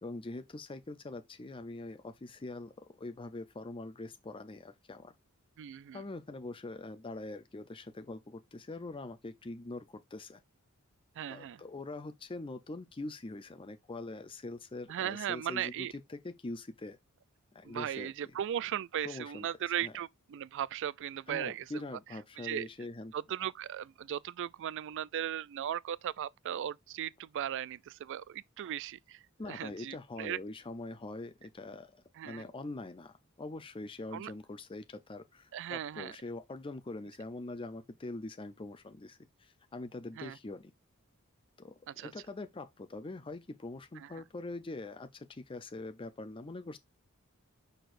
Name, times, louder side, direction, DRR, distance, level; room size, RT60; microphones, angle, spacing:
voice 1, 0.0-5.1 5.9-10.4 11.3-17.0 17.5-18.1 19.0-19.5 19.8-19.9 21.3-23.1 29.4-40.7 41.6-46.8, left 2 dB, 25° left, 0.5 m, -43 dB
voice 2, 5.6-6.0 11.2-11.6 14.9-15.9 17.6-21.7 22.4-22.7 23.1-30.4 32.2-32.4 34.1-34.3 35.5-36.2 40.2-40.4 41.9-42.1 44.0-44.2, right 10 dB, 60° right, 0.3 m, -37 dB
6.6 x 6.0 x 2.5 m
head